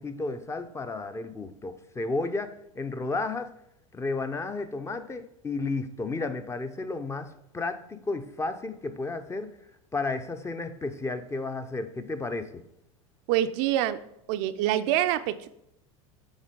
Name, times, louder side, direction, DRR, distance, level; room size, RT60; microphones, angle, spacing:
voice 1, 0.0-3.5 3.9-9.5 9.9-12.6, left 3 dB, 15° left, 0.7 m, -32 dB
voice 2, 13.3-14.0 14.3-15.5, right 12 dB, 55° right, 0.5 m, -25 dB
7.2 x 4.3 x 5.2 m
hypercardioid pair, 90°, 17 cm